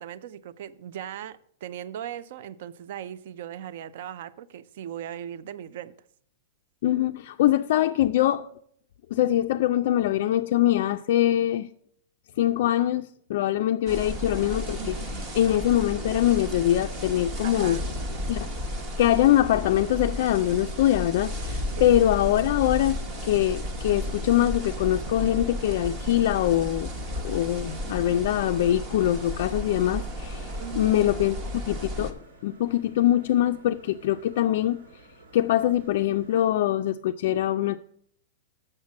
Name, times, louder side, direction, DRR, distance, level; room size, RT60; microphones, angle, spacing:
voice 1, 0.0-5.9 17.4-17.9 21.8-22.0 30.6-31.0, right 10 dB, 45° right, 0.4 m, -38 dB
voice 2, 6.8-8.5 9.1-11.7 12.4-17.8 18.3-18.5 19.0-26.9 27.2-34.8 35.3-37.8, left 12 dB, 45° left, 0.3 m, -23 dB
sound 1, 13.9-32.1, left 1 dB, 20° right, 0.8 m, -33 dB
sound 2, 19.6-36.4, right 1 dB, 85° right, 2.8 m, -54 dB
7.4 x 6.5 x 7.2 m
supercardioid pair, 180°, 0 cm